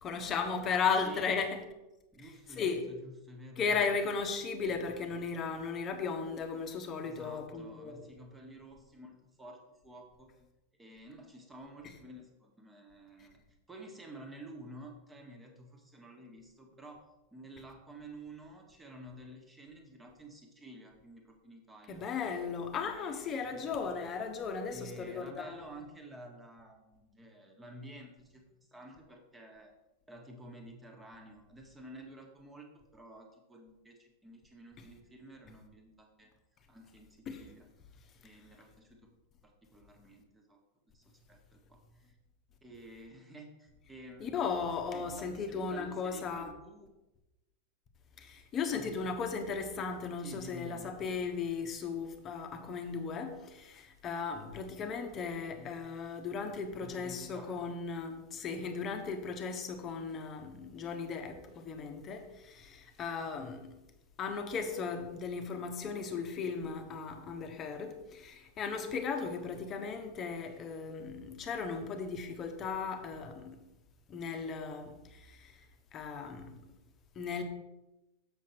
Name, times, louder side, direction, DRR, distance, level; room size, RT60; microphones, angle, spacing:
voice 1, 0.0-1.6 2.2-2.8 3.6-8.0 13.2-13.3 21.9-25.6 37.3-37.4 44.2-46.5 48.2-63.8 64.2-73.6 74.1-75.7 75.9-76.7 77.1-77.4, left 5 dB, 30° left, 1.3 m, -36 dB
voice 2, 0.7-1.4 2.1-3.9 7.1-10.3 10.8-17.0 17.3-22.0 22.7-23.9 24.7-29.7 30.1-36.3 36.7-37.7 38.2-39.1 39.4-40.6 40.9-42.2 42.6-44.4 44.9-46.9 48.7-49.0 50.2-50.9 55.6-55.8 56.8-57.5, right 1 dB, 10° right, 1.7 m, -51 dB
7.5 x 6.6 x 4.6 m
figure-of-eight pair, 90°, 0 cm